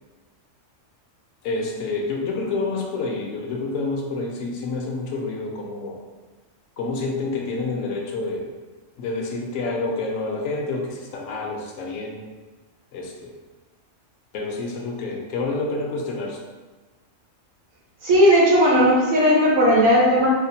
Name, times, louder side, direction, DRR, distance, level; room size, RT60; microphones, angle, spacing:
voice 1, 1.4-6.0 6.8-8.5 9.0-12.2 12.9-13.3 14.3-16.4, left 3 dB, 80° left, 0 dB, 1.0 m, -28 dB
voice 2, 18.0-20.3, equal, 75° right, -4 dB, 1.2 m, -16 dB
4.7 x 2.1 x 2.7 m, 1.3 s
omnidirectional pair, 1.3 m